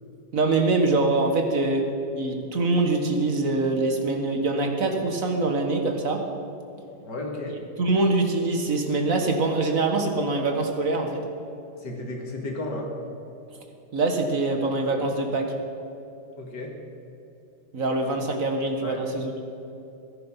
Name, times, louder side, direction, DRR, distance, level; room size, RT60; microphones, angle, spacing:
voice 1, 0.3-1.8 2.1-6.2 7.8-11.2 13.9-15.5 17.7-19.3, right 2 dB, 50° right, 4 dB, 1.7 m, -24 dB
voice 2, 7.0-7.6 11.8-12.9 16.4-16.7 18.8-19.0, left 2 dB, 75° left, 0 dB, 2.7 m, -33 dB
17.0 x 11.0 x 5.7 m, 2.9 s
omnidirectional pair, 1.9 m